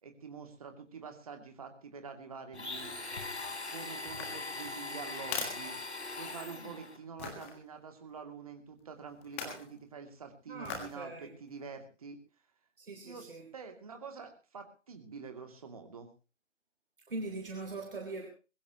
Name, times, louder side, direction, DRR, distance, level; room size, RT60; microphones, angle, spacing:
voice 1, 0.0-2.9 3.7-5.7 6.2-12.2 13.0-16.1, right 5 dB, 30° right, 6 dB, 2.6 m, -46 dB
Domestic sounds home sounds, 2.5-7.0, left 3 dB, 65° left, 3.6 m, -41 dB
sound 1, 4.1-6.5 7.2-7.5 9.2-9.7 10.6-11.0 11.5-11.6, left 5 dB, 10° left, 1.6 m, -41 dB
voice 2, 10.5-11.3 12.8-13.4 17.1-18.3, right 3 dB, 45° right, 2 dB, 3.9 m, -41 dB
22.0 x 15.0 x 3.0 m, 0.33 s
figure-of-eight pair, 155°, 37 cm